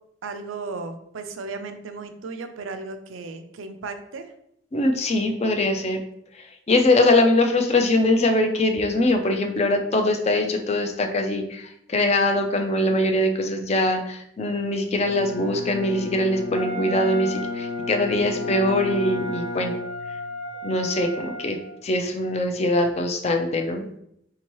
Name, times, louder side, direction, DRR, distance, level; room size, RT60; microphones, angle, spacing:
voice 1, 0.2-4.3, right 3 dB, 90° right, 8 dB, 0.5 m, -35 dB
voice 2, 4.7-6.0 6.3-19.7 20.6-23.9, left 2 dB, 35° left, 5 dB, 0.4 m, -22 dB
Bowed string instrument, 15.0-20.4, left 3 dB, 60° left, 0.8 m, -33 dB
Wind instrument woodwind instrument, 16.5-21.8, right 2 dB, 35° right, 0.5 m, -35 dB
4.4 x 2.8 x 3.0 m, 0.74 s
head